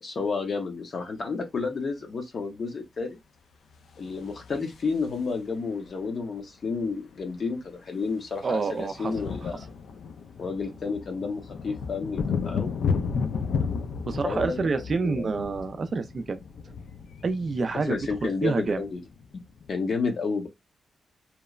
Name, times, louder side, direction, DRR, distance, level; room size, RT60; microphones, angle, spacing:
voice 1, 0.0-3.2 4.0-9.6 10.4-12.7 14.2-14.7 15.0-15.3 17.7-19.0 19.7-20.5, left 4 dB, 50° left, 0.6 m, -31 dB
sound 1, 3.9-5.5 6.8-6.9 7.1-7.3 7.6-19.7, left 5 dB, 80° left, 0.3 m, -33 dB
voice 2, 8.4-9.1 9.4-9.5 14.0-16.4 17.2-18.8, right 4 dB, 40° right, 0.3 m, -28 dB
2.9 x 2.1 x 2.3 m
wide cardioid pair, 150°, 0 cm